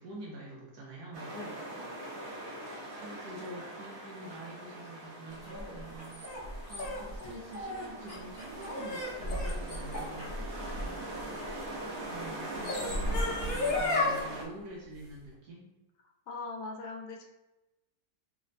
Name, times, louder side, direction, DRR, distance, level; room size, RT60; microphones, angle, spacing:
voice 1, 0.0-1.3 3.0-10.4 12.0-15.7, right 1 dB, 80° right, -3 dB, 1.2 m, -46 dB
sound 1, 1.1-14.4, right 1 dB, 55° right, 0.9 m, -42 dB
sound 2, 5.5-11.6 12.4-14.2, left 2 dB, 40° left, 0.7 m, -33 dB
voice 2, 10.4-11.1 16.3-17.3, left 3 dB, 75° left, 2 dB, 1.0 m, -42 dB
3.3 x 2.1 x 3.8 m, 1.0 s
omnidirectional pair, 1.8 m